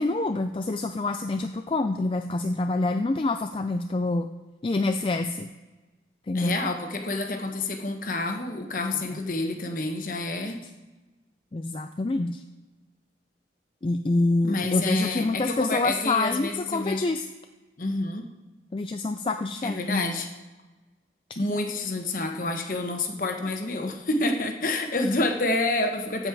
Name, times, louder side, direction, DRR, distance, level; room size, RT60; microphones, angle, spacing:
voice 1, 0.0-4.3 4.6-5.5 6.3-6.6 11.5-12.4 13.8-17.3 18.7-20.0, left 2 dB, 30° left, 7 dB, 0.3 m, -26 dB
voice 2, 6.3-10.6 14.4-17.1 17.8-18.2 19.6-20.3 21.4-26.3, left 2 dB, 50° left, 4 dB, 1.1 m, -28 dB
15.0 x 5.3 x 4.7 m, 1.2 s
head